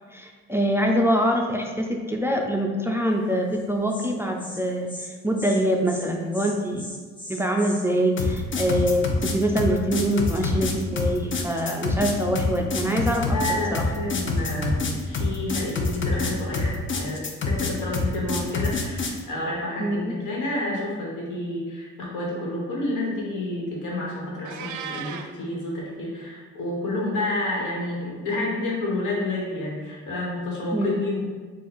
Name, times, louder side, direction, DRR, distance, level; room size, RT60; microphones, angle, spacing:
voice 1, 0.1-6.8 7.3-13.4 13.7-13.8 19.8-20.1 30.7-30.9, equal, 10° right, 1 dB, 0.4 m, -24 dB
Insect, 3.5-3.6 3.9-4.1 4.4-4.6 4.9-5.1 5.4-5.6 5.9-6.1 6.3-7.8, left 1 dB, 15° left, 1.0 m, -38 dB
sound 1, 8.2-19.2, left 3 dB, 40° left, 0.6 m, -26 dB
voice 2, 13.3-31.2, left 1 dB, 85° left, -3 dB, 1.3 m, -29 dB
Meow, 24.4-25.3, right 7 dB, 75° right, 0.5 m, -35 dB
4.3 x 2.4 x 4.3 m, 1.5 s
cardioid pair, 90°, 30 cm